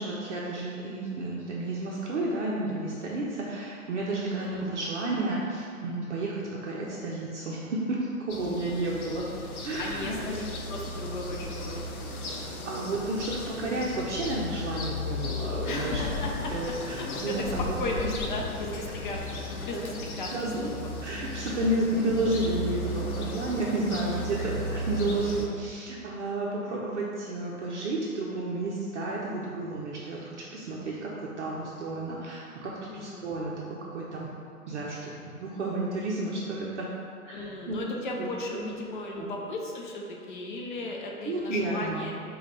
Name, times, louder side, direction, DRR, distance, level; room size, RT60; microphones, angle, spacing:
voice 1, 0.0-9.2 9.6-10.4 12.6-17.7 19.7-19.8 20.3-20.7 21.0-34.3 34.7-36.9 37.2-37.8 38.2-38.7 39.2-39.3 41.2-42.1, right 2 dB, 55° right, -4 dB, 0.6 m, -31 dB
sound 1, 8.3-25.5, left 2 dB, 70° left, 0.8 m, -35 dB
voice 2, 8.7-9.0 9.8-12.1 15.6-16.5 16.9-20.3 20.6-20.9 21.8-22.0 24.4-24.5 32.9-33.2 37.3-42.1, left 2 dB, 35° left, -1 dB, 0.6 m, -36 dB
5.1 x 2.3 x 4.0 m, 2.5 s
figure-of-eight pair, 120°, 44 cm